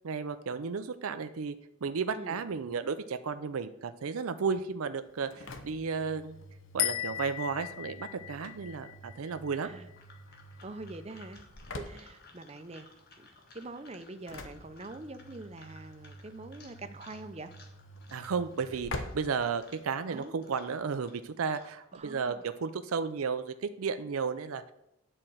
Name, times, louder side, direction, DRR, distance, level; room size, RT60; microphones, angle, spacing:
voice 1, 0.0-6.4 6.7-9.7 18.1-24.7, right 5 dB, 85° right, 10 dB, 0.5 m, -33 dB
Engine / Slam, 5.1-20.2, left 1 dB, 65° left, 0.9 m, -47 dB
sound 1, 6.8-10.2, left 14 dB, 80° left, 0.4 m, -36 dB
voice 2, 9.6-9.9 10.6-11.4 11.8-12.9 13.2-13.3 13.5-17.5 20.1-20.3 21.9-22.4, right 2 dB, 30° right, 9 dB, 0.6 m, -44 dB
sound 2, 9.7-22.0, left 3 dB, 45° left, 1.6 m, -58 dB
9.9 x 4.4 x 7.7 m, 0.85 s
head